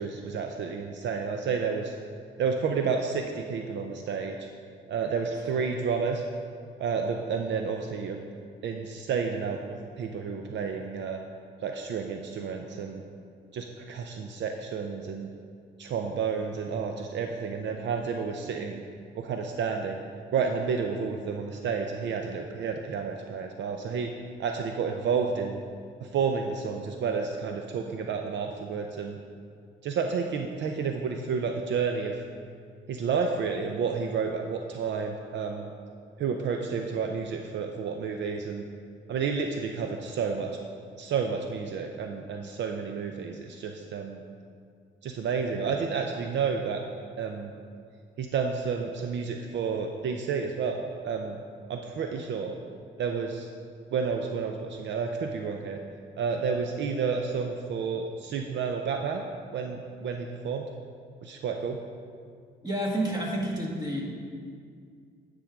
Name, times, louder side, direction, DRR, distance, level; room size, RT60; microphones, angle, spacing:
voice 1, 0.0-1.9 2.4-4.4 4.9-6.2 6.8-8.2 8.6-11.2 11.6-13.0 13.5-15.3 15.8-18.8 19.1-20.0 20.3-24.1 24.4-25.6 26.0-29.2 29.8-32.2 32.9-35.7 36.2-38.6 39.1-40.5 41.0-44.2 45.0-46.8 47.2-47.5 48.2-50.8 51.0-51.4 51.7-52.6 53.0-53.5 53.9-55.8 56.2-59.2 59.5-60.6 61.2-61.8, right 5 dB, 65° right, 4 dB, 0.6 m, -30 dB
voice 2, 62.6-64.0, right 1 dB, 20° right, -3 dB, 1.9 m, -29 dB
9.9 x 3.8 x 6.0 m, 2.2 s
cardioid pair, 90°, 20 cm